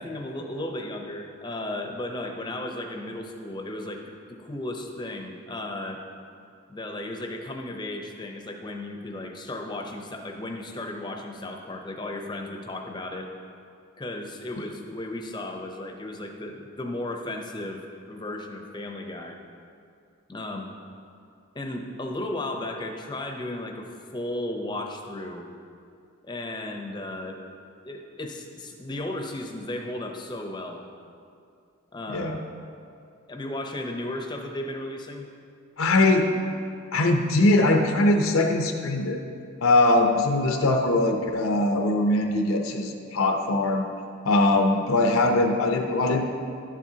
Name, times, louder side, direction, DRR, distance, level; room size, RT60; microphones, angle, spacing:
voice 1, 0.0-6.0 6.7-13.3 14.0-17.8 18.1-19.4 20.3-20.7 21.5-23.9 24.1-25.5 26.2-27.4 27.8-30.8 31.9-32.3 33.3-35.3 40.5-40.7, left 1 dB, 20° left, 3 dB, 0.6 m, -35 dB
voice 2, 32.1-32.4 35.8-36.3 36.9-39.2 39.6-43.9 44.2-46.3, left 2 dB, 75° left, 3 dB, 0.6 m, -21 dB
11.5 x 7.4 x 2.8 m, 2.4 s
head